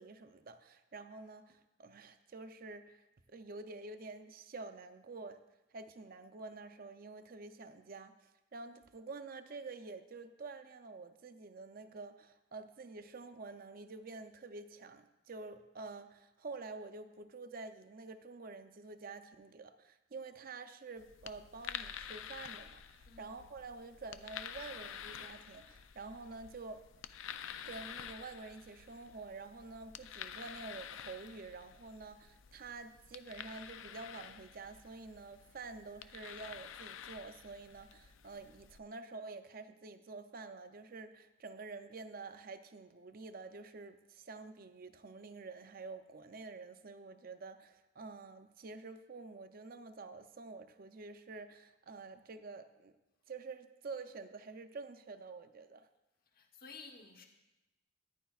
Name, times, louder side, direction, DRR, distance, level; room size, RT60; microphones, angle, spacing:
voice 1, 0.0-5.4 5.7-26.8 27.6-52.9 53.3-55.9, right 3 dB, 45° right, 10 dB, 0.5 m, -48 dB
sound 1, 21.0-38.8, left 9 dB, 75° left, 0.4 m, -49 dB
voice 2, 23.0-23.4 56.3-57.2, left 4 dB, 45° left, 2 dB, 1.1 m, -53 dB
14.0 x 10.0 x 2.4 m, 0.99 s
head